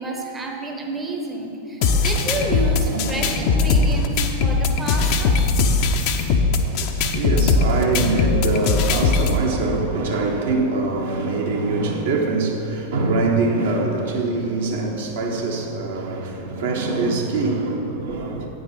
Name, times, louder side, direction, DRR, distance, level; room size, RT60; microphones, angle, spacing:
voice 1, 0.0-5.4 5.9-6.3, right 2 dB, 10° right, 0.8 m, -30 dB
sound 1, 1.8-9.4, left 4 dB, 45° left, 0.6 m, -20 dB
sound 2, 1.8-7.0, right 2 dB, 85° right, 1.0 m, -36 dB
voice 2, 6.5-18.5, right 3 dB, 60° right, 1.1 m, -23 dB
9.0 x 5.2 x 5.9 m
figure-of-eight pair, 90°, 0 cm